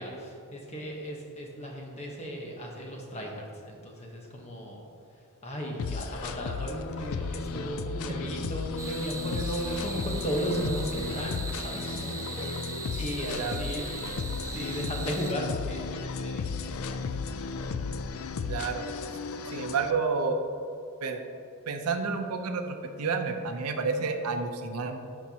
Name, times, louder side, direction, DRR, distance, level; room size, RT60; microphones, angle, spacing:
voice 1, 0.0-4.8 5.4-12.6 12.9-13.9 14.1-17.0, equal, 30° left, -1 dB, 1.1 m, -35 dB
sound 1, 5.8-19.9, left 4 dB, 65° left, 0.3 m, -34 dB
Crickets in the beautiful state of Veracruz Mexico, 8.8-15.3, right 4 dB, 15° right, 0.3 m, -40 dB
voice 2, 13.3-13.6 18.5-18.9 19.5-20.4 21.0-21.2 21.7-25.0, right 4 dB, 90° right, 6 dB, 0.7 m, -30 dB
12.0 x 4.4 x 2.9 m, 2.6 s
head